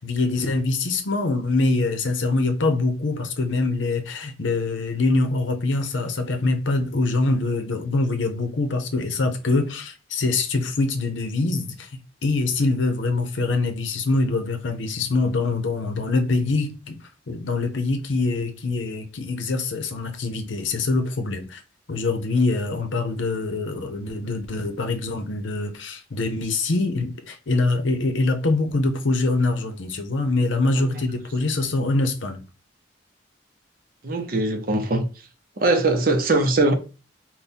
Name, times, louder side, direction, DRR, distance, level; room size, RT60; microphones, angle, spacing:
voice 1, 0.0-11.9 12.2-17.0 17.3-21.6 21.9-32.4, left 3 dB, 90° left, 0.7 m, -24 dB
voice 2, 34.0-35.1 35.6-36.7, right 2 dB, 50° right, 0.6 m, -21 dB
3.6 x 2.2 x 4.1 m
head